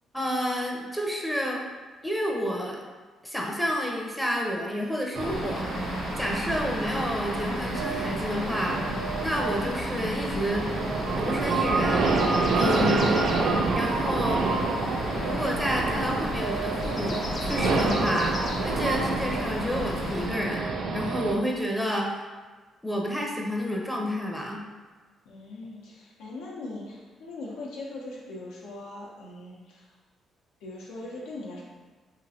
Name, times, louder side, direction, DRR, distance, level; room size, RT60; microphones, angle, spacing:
voice 1, 0.1-1.7 2.0-2.8 3.2-8.8 9.2-10.7 11.2-12.1 12.5-13.2 13.7-14.4 15.2-18.3 18.6-22.1 22.8-24.6, equal, 5° left, -2 dB, 0.5 m, -30 dB
sound 1, 5.2-20.3, left 2 dB, 55° left, 0.4 m, -35 dB
sound 2, 5.2-21.3, right 3 dB, 65° right, 0.4 m, -28 dB
voice 2, 25.2-29.9 30.6-31.6, left 2 dB, 90° left, -4 dB, 0.7 m, -40 dB
2.9 x 2.5 x 2.7 m, 1.4 s
cardioid pair, 90°, 0 cm